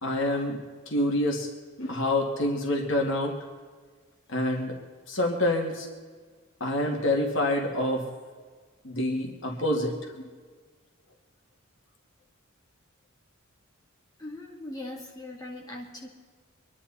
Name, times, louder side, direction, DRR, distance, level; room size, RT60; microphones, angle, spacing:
voice 1, 0.0-0.6 0.9-1.5 1.8-3.3 4.3-4.7 5.1-5.9 6.6-8.0 8.8-10.3, left 1 dB, 60° left, 0 dB, 2.4 m, -27 dB
voice 2, 14.2-16.1, left 1 dB, 20° left, -2 dB, 2.8 m, -40 dB
25.0 x 11.0 x 4.3 m, 1.5 s
head